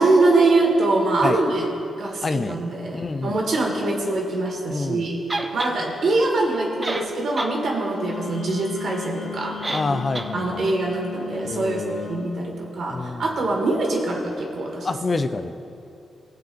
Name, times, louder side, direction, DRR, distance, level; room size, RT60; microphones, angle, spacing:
voice 1, 0.0-1.7 2.0-5.2 5.5-9.6 9.8-10.0 10.3-15.0, right 2 dB, 65° right, 0 dB, 1.8 m, -23 dB
voice 2, 2.2-2.6 2.9-3.4 4.7-5.0 9.7-10.6 11.4-12.1 12.9-13.2 14.8-15.5, left 3 dB, 35° left, 9 dB, 0.4 m, -27 dB
sound 1, 5.3-5.8 6.5-6.6 6.8-7.6 7.9-8.0 9.6-9.9 10.1-10.3, right 2 dB, 25° right, 0.7 m, -28 dB
Wind instrument woodwind instrument, 7.9-12.3, left 8 dB, 90° left, 2.1 m, -36 dB
18.0 x 7.5 x 2.6 m, 2.6 s
cardioid pair, 85°, 0 cm